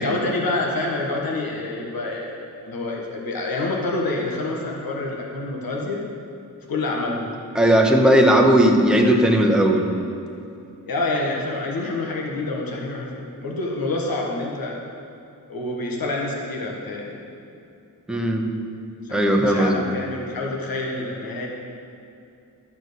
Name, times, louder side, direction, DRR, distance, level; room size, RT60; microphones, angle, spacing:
voice 1, 0.0-6.0 6.7-7.4 10.9-14.8 15.5-17.3 19.0-21.5, left 2 dB, 90° left, -1 dB, 1.4 m, -27 dB
voice 2, 7.5-9.8 18.1-18.5 19.1-19.8, right 1 dB, ahead, 1 dB, 0.9 m, -17 dB
12.5 x 4.5 x 8.2 m, 2.7 s
wide cardioid pair, 170°, 34 cm